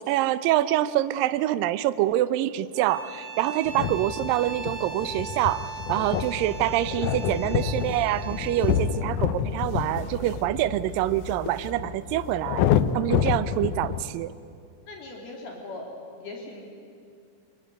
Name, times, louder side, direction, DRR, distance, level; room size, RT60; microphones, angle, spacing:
voice 1, 0.1-12.6 12.9-14.3, right 14 dB, 80° right, 13 dB, 2.0 m, -26 dB
sound 1, 2.7-8.9, right 5 dB, 10° right, 5.5 m, -39 dB
sound 2, 3.7-14.0, left 9 dB, 90° left, 1.8 m, -28 dB
sound 3, 6.0-12.0, right 2 dB, 30° left, 1.1 m, -43 dB
voice 2, 14.9-15.9 16.2-16.6, left 2 dB, 65° left, 0 dB, 4.8 m, -40 dB
26.0 x 22.0 x 9.7 m, 2.3 s
omnidirectional pair, 4.9 m